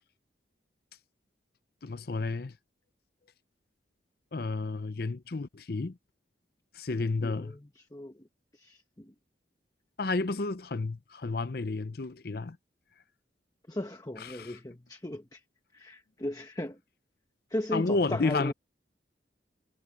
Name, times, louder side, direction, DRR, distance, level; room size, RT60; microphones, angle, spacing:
voice 1, 1.8-2.5 4.3-6.0 6.7-7.6 10.0-12.6 14.2-14.6 17.7-18.5, left 3 dB, 55° left, 0.6 m, -31 dB
voice 2, 7.2-8.2 8.5-9.1 13.7-15.4 15.7-16.8 17.5-18.5, left 1 dB, 20° left, 1.1 m, -37 dB
head